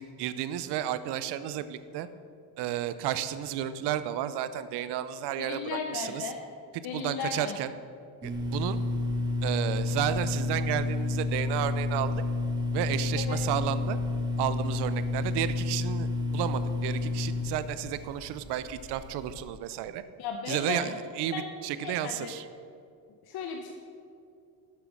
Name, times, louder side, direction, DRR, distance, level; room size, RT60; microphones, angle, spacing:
voice 1, 0.0-2.1 2.6-6.3 6.9-7.7 8.2-8.8 9.4-12.2 12.7-14.0 14.4-20.0 20.5-22.4, right 11 dB, 80° right, 13 dB, 0.6 m, -32 dB
voice 2, 5.4-6.4 6.8-7.6 13.2-13.4 20.2-20.9 21.3-21.5 21.8-22.3 23.3-23.7, left 6 dB, 65° left, 3 dB, 0.9 m, -35 dB
sound 1, 8.2-19.4, left 3 dB, 10° right, 1.6 m, -30 dB
7.8 x 6.9 x 6.3 m, 2.4 s
cardioid pair, 85°, 40 cm